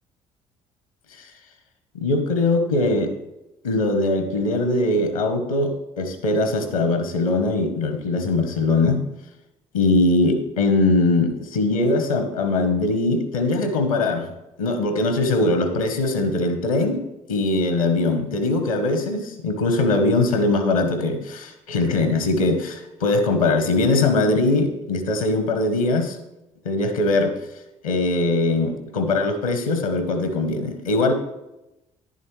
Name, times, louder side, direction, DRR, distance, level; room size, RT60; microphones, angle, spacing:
voice 1, 1.9-3.1 3.6-9.0 9.7-17.0 17.3-26.2 26.6-27.4 27.8-31.1, left 2 dB, 85° left, 9 dB, 1.0 m, -21 dB
11.0 x 9.7 x 3.2 m, 0.92 s
figure-of-eight pair, 50°, 17 cm